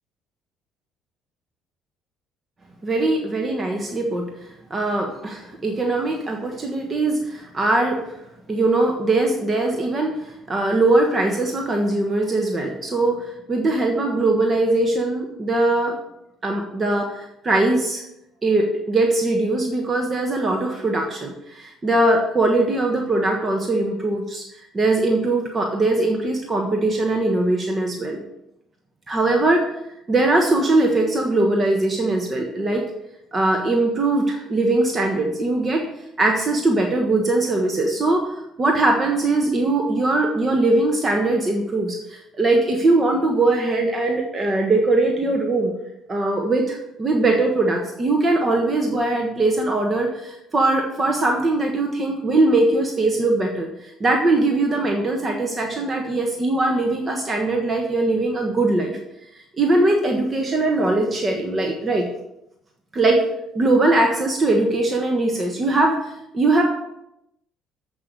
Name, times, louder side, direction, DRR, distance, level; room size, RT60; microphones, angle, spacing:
voice 1, 2.8-4.3 4.7-8.0 8.5-16.0 16.4-18.0 18.4-24.4 24.7-28.2 29.1-29.7 30.1-32.8 33.3-35.9 36.2-45.7 46.1-59.0 59.6-62.1 62.9-63.2 63.5-66.6, right 2 dB, 30° right, 1 dB, 1.3 m, -21 dB
7.9 x 5.5 x 6.7 m, 0.83 s
cardioid pair, 100°, 0 cm